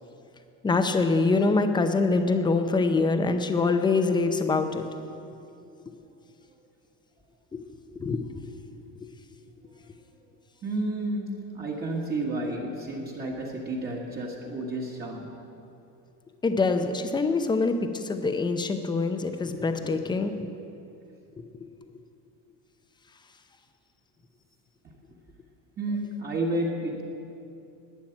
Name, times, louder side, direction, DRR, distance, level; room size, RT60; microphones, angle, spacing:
voice 1, 0.6-4.9 8.0-8.2 16.4-20.3, left 3 dB, 10° left, 7 dB, 0.7 m, -24 dB
voice 2, 10.6-15.3 24.8-24.9 25.8-27.0, right 2 dB, 25° right, -2 dB, 1.7 m, -31 dB
12.0 x 9.2 x 9.1 m, 2.7 s
cardioid pair, 150°, 36 cm